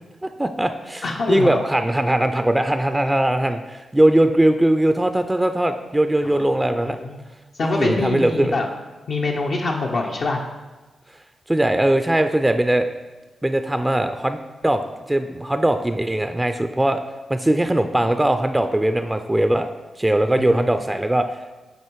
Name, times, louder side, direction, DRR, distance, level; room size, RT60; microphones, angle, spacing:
voice 1, 0.2-7.0 7.6-8.6 11.5-12.9 13.4-14.8 15.1-17.0 17.3-19.7 20.0-21.3, right 1 dB, 15° right, 8 dB, 0.4 m, -20 dB
voice 2, 1.0-1.6 6.2-7.2 7.6-8.7 9.1-10.4 20.4-20.6, left 3 dB, 70° left, -1 dB, 0.6 m, -25 dB
8.8 x 2.9 x 4.6 m, 1.2 s
cardioid pair, 60°, 0 cm